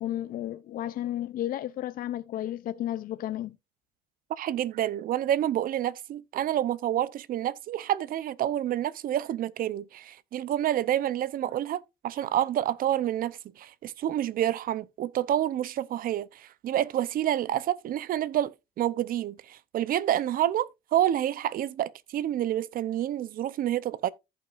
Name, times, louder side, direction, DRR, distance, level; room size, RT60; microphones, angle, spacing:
voice 1, 0.0-3.6, left 12 dB, 55° left, 0.5 m, -33 dB
voice 2, 4.3-24.1, right 12 dB, 60° right, 0.7 m, -28 dB
14.5 x 5.7 x 2.5 m
cardioid pair, 110°, 17 cm